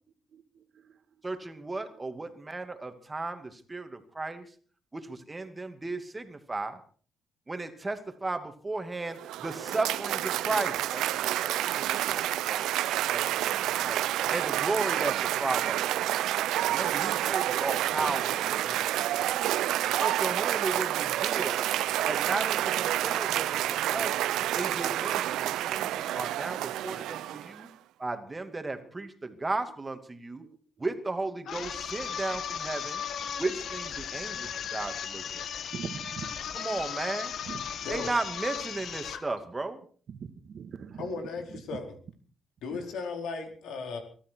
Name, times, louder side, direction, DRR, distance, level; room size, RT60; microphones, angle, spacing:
voice 1, 0.3-1.0 25.1-25.2 27.0-27.1 28.5-28.7 29.0-29.3 30.4-30.6 31.4-31.6 35.7-36.6 37.5-37.6 40.1-41.8 42.7-42.8, right 7 dB, 55° right, 1.8 m, -44 dB
voice 2, 1.2-4.5 4.9-6.8 7.5-12.7 13.1-15.8 16.7-18.9 20.0-21.6 22.0-24.2 24.5-27.7 28.0-30.4 30.8-33.0 33.4-35.4 36.5-37.3 37.9-39.8, right 3 dB, 20° right, 2.4 m, -35 dB
Cheering / Applause, 9.0-27.6, right 13 dB, 85° right, 0.7 m, -29 dB
sound 1, 31.4-39.3, left 8 dB, 65° left, 1.6 m, -36 dB
voice 3, 41.0-42.0 42.6-44.0, left 4 dB, 80° left, 4.4 m, -36 dB
23.5 x 13.0 x 4.7 m
cardioid pair, 90°, 0 cm